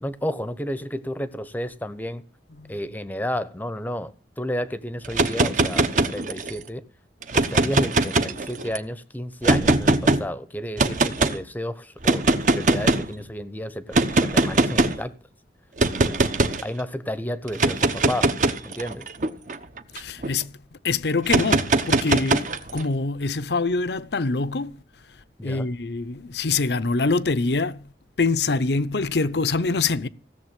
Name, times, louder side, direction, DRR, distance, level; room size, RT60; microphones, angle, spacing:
voice 1, 0.0-2.2 2.7-6.8 7.3-15.1 15.9-16.2 16.6-18.3 18.6-19.1 25.4-25.7, equal, 10° left, 0.8 m, -31 dB
sound 1, 5.0-6.6 7.2-8.8 9.4-10.2 10.8-11.4 12.0-13.1 13.9-15.0 15.8-16.6 17.5-20.3 21.3-22.8, right 2 dB, 45° right, 1.1 m, -21 dB
voice 2, 19.9-20.6 20.8-24.8 25.4-27.9 28.2-30.1, left 3 dB, 70° left, 0.8 m, -25 dB
16.5 x 7.3 x 9.0 m
head